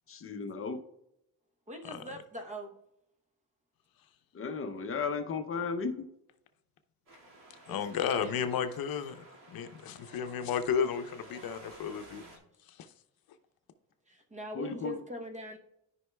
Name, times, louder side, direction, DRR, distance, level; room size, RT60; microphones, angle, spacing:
voice 1, 0.1-0.8 4.3-6.1 14.5-15.0, left 5 dB, 35° left, 5 dB, 0.7 m, -35 dB
voice 2, 1.7-2.8 7.7-8.3 9.3-9.4 9.6-9.7 12.4-12.5 14.1-15.6, equal, 20° right, 4 dB, 0.9 m, -43 dB
Wind, 7.1-12.4, right 1 dB, 60° right, 2.1 m, -54 dB
voice 3, 7.7-12.2 12.7-12.9, left 7 dB, 70° left, 9 dB, 0.7 m, -33 dB
12.5 x 5.5 x 2.3 m, 0.83 s
cardioid pair, 155°, 37 cm